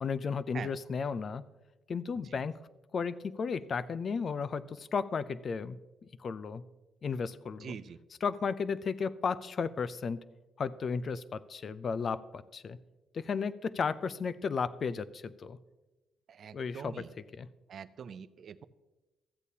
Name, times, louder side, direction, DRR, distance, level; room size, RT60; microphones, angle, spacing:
voice 1, 0.0-1.4 1.9-2.5 2.9-5.8 6.2-6.6 7.0-7.8 8.2-10.2 10.6-12.8 13.1-15.6 16.5-17.5, left 5 dB, 45° left, 15 dB, 0.4 m, -34 dB
voice 2, 7.6-8.0 16.3-17.1 17.7-18.6, right 7 dB, 60° right, 14 dB, 0.4 m, -44 dB
13.5 x 8.2 x 2.8 m, 1.1 s
cardioid pair, 90°, 0 cm